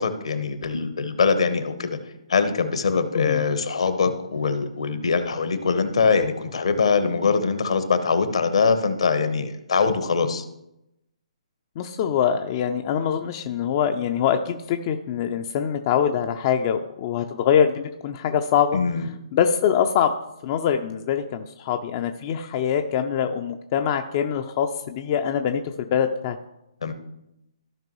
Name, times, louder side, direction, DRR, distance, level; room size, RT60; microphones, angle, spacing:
voice 1, 0.0-2.0 2.3-10.4 18.7-19.1 26.8-26.9, left 5 dB, 65° left, 10 dB, 1.0 m, -23 dB
voice 2, 11.8-18.8 19.3-20.1 20.4-26.4, left 8 dB, 35° left, 5 dB, 0.5 m, -24 dB
15.0 x 5.1 x 3.1 m, 0.86 s
figure-of-eight pair, 130°, 3 cm